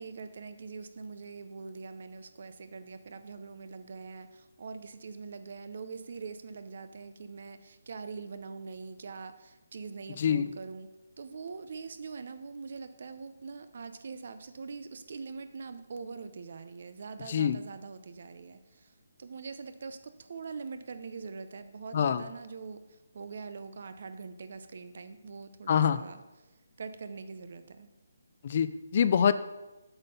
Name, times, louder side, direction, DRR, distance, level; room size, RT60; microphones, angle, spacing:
voice 1, 0.0-10.9 11.2-26.2 26.8-27.9, right 4 dB, 50° right, 11 dB, 0.6 m, -43 dB
voice 2, 10.2-10.5 17.3-17.6 21.9-22.2 25.7-26.0 28.4-29.3, left 8 dB, 35° left, 13 dB, 0.3 m, -25 dB
8.1 x 5.4 x 5.5 m, 1.1 s
hypercardioid pair, 175°, 0 cm